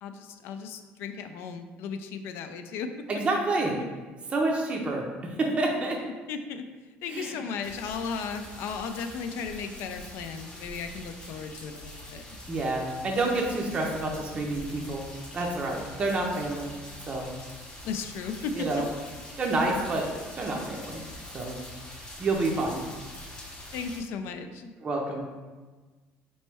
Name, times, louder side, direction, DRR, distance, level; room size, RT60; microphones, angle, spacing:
voice 1, 0.0-3.1 6.3-6.7 7.0-12.2 17.8-18.9 23.7-24.7, left 5 dB, 70° left, 8 dB, 0.3 m, -35 dB
voice 2, 3.1-3.7 4.3-5.0 5.4-6.0 7.1-7.3 12.5-15.0 15.3-16.8 17.1-17.3 18.6-18.9 19.4-20.0 20.4-21.0 21.3-21.6 22.2-22.9 24.8-25.2, right 2 dB, 25° right, -1 dB, 0.5 m, -28 dB
sound 1, 7.6-24.0, left 1 dB, 20° left, 0.7 m, -44 dB
4.3 x 3.1 x 3.3 m, 1.3 s
cardioid pair, 145°, 4 cm